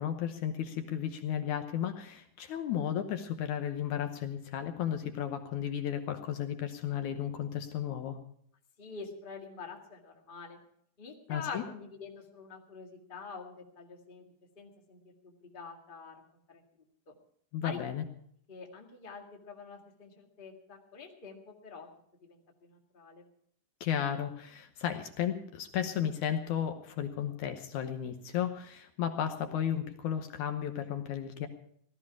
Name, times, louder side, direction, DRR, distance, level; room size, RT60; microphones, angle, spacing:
voice 1, 0.0-8.2 11.3-11.6 17.5-18.0 23.8-31.5, left 9 dB, 70° left, 7 dB, 2.2 m, -34 dB
voice 2, 8.8-10.6 11.0-14.2 14.5-16.1 16.5-16.6 17.1-17.2 17.6-17.8 18.5-21.9 22.2-23.2, left 5 dB, 20° left, 1 dB, 1.5 m, -46 dB
17.0 x 13.5 x 4.8 m, 0.67 s
omnidirectional pair, 3.8 m